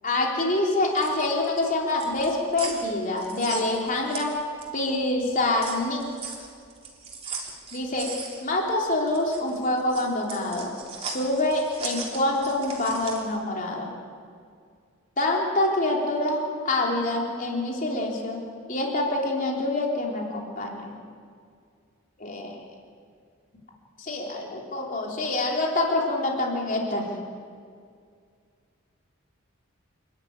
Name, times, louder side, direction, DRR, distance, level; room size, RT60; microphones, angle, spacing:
voice 1, 0.0-4.3 4.7-6.0 7.7-8.1 8.4-13.9 15.2-18.4 18.7-21.0 22.2-22.6 24.0-27.1, left 2 dB, 40° left, -1 dB, 3.6 m, -26 dB
sound 1, 0.7-4.9 5.2-13.3, right 4 dB, 30° right, 3.6 m, -39 dB
29.0 x 12.0 x 9.6 m, 2.2 s
head